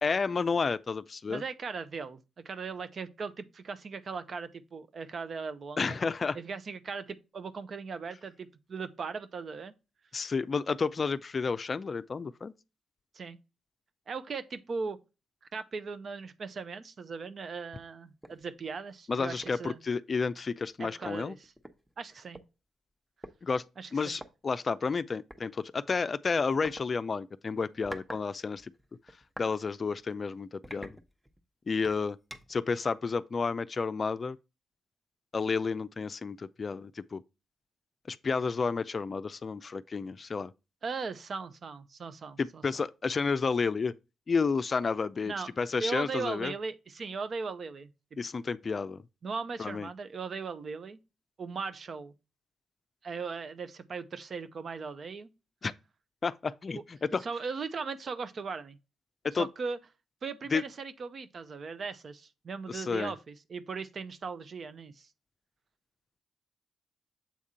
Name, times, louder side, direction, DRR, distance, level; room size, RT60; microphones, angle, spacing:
voice 1, 0.0-1.4 5.8-6.4 10.1-12.5 19.1-21.4 23.4-23.6 23.9-28.7 29.4-31.0 31.7-32.2 32.5-34.4 35.3-37.2 38.1-40.5 42.4-43.9 44.3-46.5 48.2-49.0 49.6-49.9 55.6-55.7 56.2-57.2 59.2-59.5 60.5-60.6 62.7-63.1, left 4 dB, 45° left, 0.4 m, -31 dB
voice 2, 1.3-2.2 2.4-6.0 6.3-9.7 13.1-13.4 14.1-15.0 15.5-19.8 20.8-21.5 22.0-22.4 23.8-24.2 40.8-42.6 45.2-45.5 45.8-47.9 49.2-51.0 51.4-52.1 53.0-55.3 57.2-58.8 59.3-59.8 60.2-65.1, right 5 dB, 55° right, 0.7 m, -38 dB
sound 1, 18.2-18.4 18.9-19.0 19.4-19.7 20.7-20.8 21.0-22.4 23.2-23.4 24.1-24.3 25.3-25.5 26.6-26.8 27.6-28.3 28.6-29.5 30.0-30.1 30.6-31.4 31.8-32.6, equal, 10° right, 1.0 m, -46 dB
7.4 x 3.6 x 4.2 m
hypercardioid pair, 45°, 0 cm